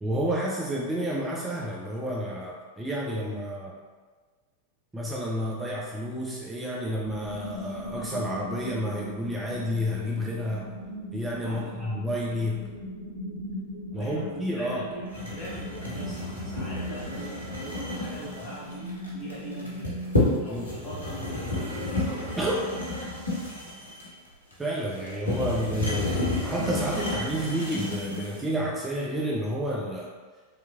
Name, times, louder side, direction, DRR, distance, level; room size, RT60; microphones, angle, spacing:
voice 1, 0.0-3.7 4.9-10.7 11.1-12.7 13.9-14.9 20.5-20.7 22.4-22.6 24.6-30.1, equal, 10° right, -4 dB, 0.4 m, -30 dB
sound 1, 7.0-20.7, equal, 90° right, 0.9 m, -39 dB
voice 2, 11.4-11.9 13.9-20.0 20.4-22.6, equal, 15° left, -9 dB, 1.4 m, -42 dB
sound 2, 15.1-28.4, left 2 dB, 80° left, 0.8 m, -31 dB
3.4 x 2.9 x 2.4 m, 1.4 s
figure-of-eight pair, 90°, 0 cm